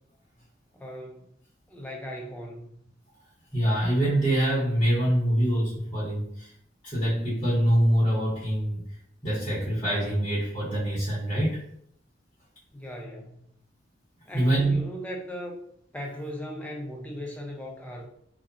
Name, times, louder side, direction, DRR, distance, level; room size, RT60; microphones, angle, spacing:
voice 1, 0.7-1.3 1.7-2.8 12.7-13.5 14.2-15.6 15.9-18.1, equal, 10° left, -1 dB, 0.4 m, -38 dB
voice 2, 3.5-6.5 6.8-8.8 9.2-11.6 14.3-14.8, right 1 dB, 25° left, -8 dB, 0.9 m, -24 dB
2.7 x 2.1 x 2.4 m, 0.68 s
head